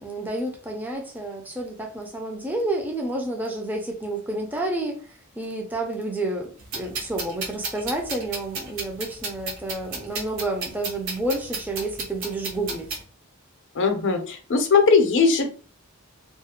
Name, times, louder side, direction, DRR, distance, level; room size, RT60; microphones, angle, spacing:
voice 1, 0.0-13.0, right 2 dB, 10° right, 1 dB, 0.4 m, -30 dB
sound 1, 6.6-13.0, right 3 dB, 60° right, 0.7 m, -33 dB
voice 2, 13.8-15.5, left 4 dB, 55° left, 6 dB, 0.5 m, -19 dB
2.4 x 2.0 x 2.8 m, 0.40 s
head